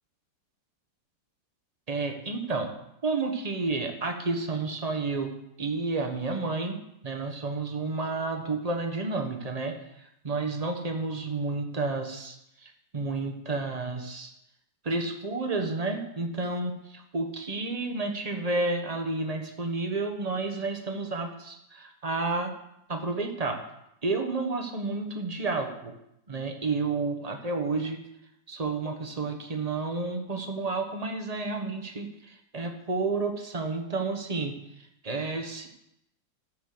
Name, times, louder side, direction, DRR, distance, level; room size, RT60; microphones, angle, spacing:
voice 1, 1.9-2.7 3.0-6.7 7.0-9.7 10.2-12.3 12.6-14.3 14.8-22.5 22.9-23.6 24.0-25.9 26.3-28.0 28.5-34.5 35.0-35.7, right 3 dB, 25° right, 4 dB, 1.1 m, -31 dB
10.5 x 6.7 x 7.8 m, 0.81 s
omnidirectional pair, 2.1 m